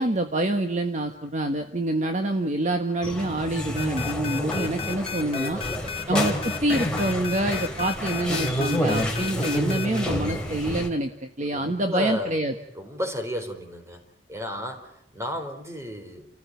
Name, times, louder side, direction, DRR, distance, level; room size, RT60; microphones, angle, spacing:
voice 1, 0.0-5.6 6.1-12.5, right 1 dB, 40° right, 5 dB, 1.5 m, -26 dB
sound 1, 3.0-10.9, equal, 5° left, 3.4 m, -29 dB
sound 2, 3.8-10.0, left 9 dB, 35° left, 2.4 m, -33 dB
voice 2, 5.5-6.1 11.5-12.3 12.7-14.0 14.3-16.3, left 1 dB, 15° right, 5 dB, 4.4 m, -33 dB
30.0 x 14.5 x 9.5 m, 0.81 s
head